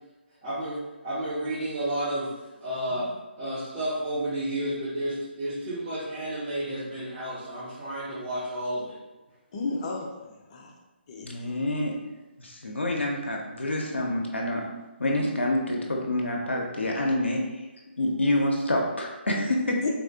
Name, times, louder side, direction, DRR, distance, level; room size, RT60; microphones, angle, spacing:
voice 1, 0.4-2.3 2.6-3.1 3.4-9.0, right 1 dB, 30° right, -12 dB, 0.8 m, -31 dB
voice 2, 9.5-10.7 11.1-11.5 19.8-19.9, left 3 dB, 35° left, -1 dB, 0.5 m, -34 dB
voice 3, 11.2-12.0 12.4-14.7 15.0-17.6 18.0-19.8, left 1 dB, 80° left, -1 dB, 0.5 m, -27 dB
3.6 x 2.4 x 2.3 m, 1.1 s
figure-of-eight pair, 140°, 6 cm